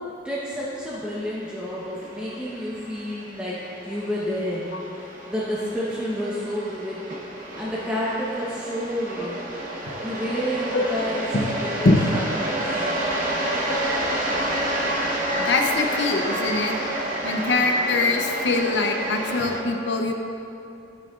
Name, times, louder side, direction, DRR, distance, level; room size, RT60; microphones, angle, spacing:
voice 1, 0.2-3.6 3.8-4.7 4.9-7.0 7.6-9.4 10.0-11.3 11.6-12.9, equal, 5° right, -8 dB, 0.9 m, -30 dB
sound 1, 1.3-19.6, right 1 dB, 45° right, 0.9 m, -29 dB
voice 2, 15.5-16.8 17.2-20.1, left 3 dB, 65° left, 3 dB, 0.7 m, -22 dB
14.0 x 6.0 x 2.5 m, 2.8 s
head